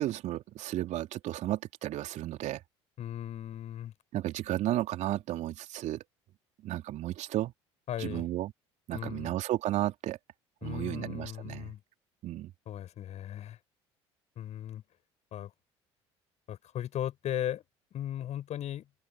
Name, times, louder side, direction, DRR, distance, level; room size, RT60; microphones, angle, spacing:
voice 1, 0.0-2.6 4.1-6.0 6.6-7.5 8.0-8.5 8.9-10.2 10.6-11.7 12.2-12.5, right 14 dB, 55° right, 3.0 m, -33 dB
voice 2, 3.0-3.9 7.9-8.3 8.9-9.4 10.6-11.8 12.7-13.6 14.4-14.8 15.3-15.5 16.5-17.7 17.9-18.8, left 11 dB, 50° left, 7.2 m, -37 dB
hypercardioid pair, 60°, 14 cm